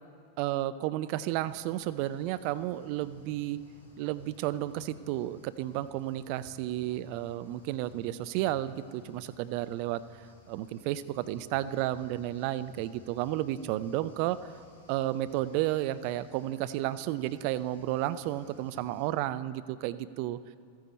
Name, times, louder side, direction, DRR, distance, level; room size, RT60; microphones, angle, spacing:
voice 1, 0.4-3.6 4.0-10.0 10.5-14.6 14.9-20.4, right 14 dB, 45° right, 14 dB, 0.3 m, -32 dB
sound 1, 1.3-19.1, left 3 dB, 60° left, 2.8 m, -58 dB
13.5 x 9.2 x 4.2 m, 2.3 s
figure-of-eight pair, 90°, 0 cm